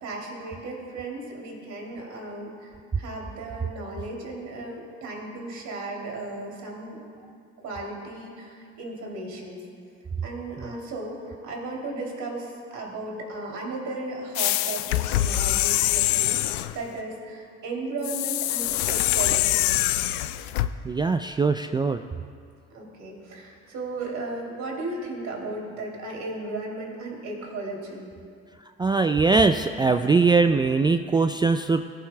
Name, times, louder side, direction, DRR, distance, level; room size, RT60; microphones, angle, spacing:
voice 1, 0.0-2.7 3.0-7.0 7.6-9.6 10.2-19.7 22.7-28.0, right 2 dB, 65° right, -1 dB, 2.9 m, -35 dB
sound 1, 14.4-16.8 18.0-20.7, left 15 dB, 85° left, 0.5 m, -24 dB
voice 2, 20.8-22.0 28.8-31.8, right 4 dB, 15° right, 8 dB, 0.3 m, -21 dB
18.0 x 11.5 x 2.2 m, 2.2 s
hypercardioid pair, 65°, 31 cm